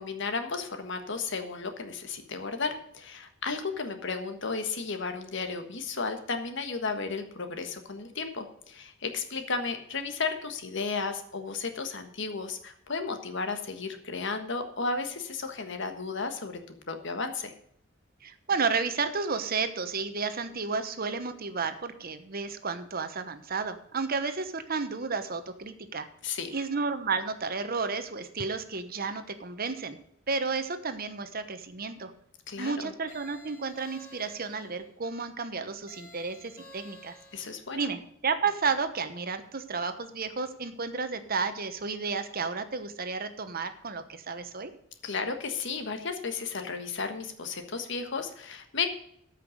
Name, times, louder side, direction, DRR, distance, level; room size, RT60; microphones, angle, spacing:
voice 1, 0.0-17.5 26.2-26.5 32.5-32.9 37.3-37.9 45.0-48.9, left 4 dB, 65° left, 7 dB, 1.5 m, -34 dB
voice 2, 18.2-26.1 26.5-30.0 30.3-32.1 32.6-37.1 37.7-44.7, right 4 dB, 50° right, 9 dB, 1.1 m, -32 dB
sound 1, 33.1-34.8 35.9-37.6, left 1 dB, 45° left, 2.9 m, -51 dB
13.5 x 5.8 x 6.4 m, 0.69 s
head